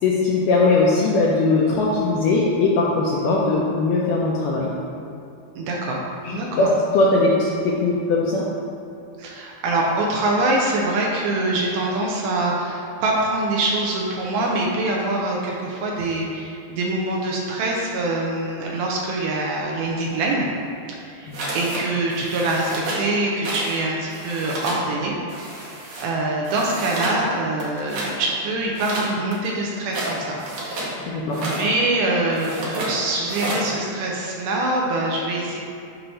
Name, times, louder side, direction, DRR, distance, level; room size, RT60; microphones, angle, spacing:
voice 1, 0.0-4.7 6.2-6.7 6.9-8.4 21.3-21.4 31.1-31.4, left 3 dB, 80° left, -5 dB, 1.9 m, -20 dB
voice 2, 5.6-6.1 6.3-6.7 9.2-20.5 20.9-25.6 26.0-30.4 30.6-35.6, right 2 dB, 80° right, -2 dB, 2.6 m, -24 dB
sound 1, 21.3-21.8 22.1-23.1 23.4-23.8 24.0-24.8 25.3-26.1 26.4-27.2 27.6-28.1 28.7-30.9 31.3-31.7 32.3-32.9 33.3-33.7, right 1 dB, 65° right, 1.8 m, -30 dB
8.7 x 2.9 x 5.5 m, 2.7 s
omnidirectional pair, 4.4 m